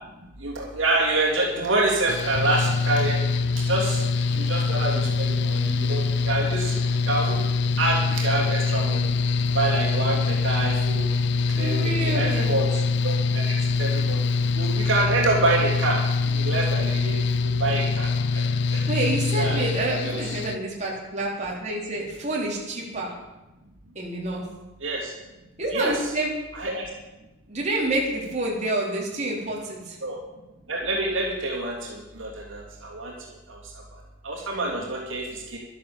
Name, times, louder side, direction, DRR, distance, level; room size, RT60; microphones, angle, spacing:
voice 1, 0.4-3.2 3.6-6.8 7.1-7.4 7.8-9.1 9.5-11.2 11.6-14.2 14.5-18.4 18.7-18.9 19.3-19.6 20.0-20.3 24.8-25.1 25.7-26.1 26.5-26.9 30.0-30.2 30.7-33.1 33.5-33.6 34.2-35.6, right 2 dB, 70° right, -2 dB, 3.1 m, -27 dB
Mechanical fan, 2.1-20.6, left 4 dB, 55° left, 0.4 m, -24 dB
voice 2, 11.6-12.5 18.9-23.1 24.0-24.4 25.6-26.3 27.5-30.0 34.5-34.6, right 2 dB, 35° right, -3 dB, 3.7 m, -28 dB
12.0 x 11.5 x 7.1 m, 1.0 s
head